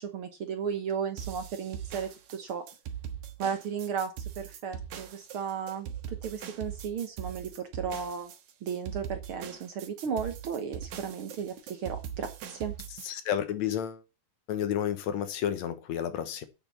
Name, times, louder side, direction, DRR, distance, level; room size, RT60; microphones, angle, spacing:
voice 1, 0.0-2.6 3.4-8.3 8.6-12.7, right 7 dB, 55° right, 1.7 m, -35 dB
sound 1, 1.2-13.1, right 9 dB, 80° right, 2.6 m, -41 dB
voice 2, 13.1-14.0 14.5-16.5, left 10 dB, 70° left, 2.3 m, -31 dB
8.6 x 6.7 x 7.1 m
omnidirectional pair, 3.4 m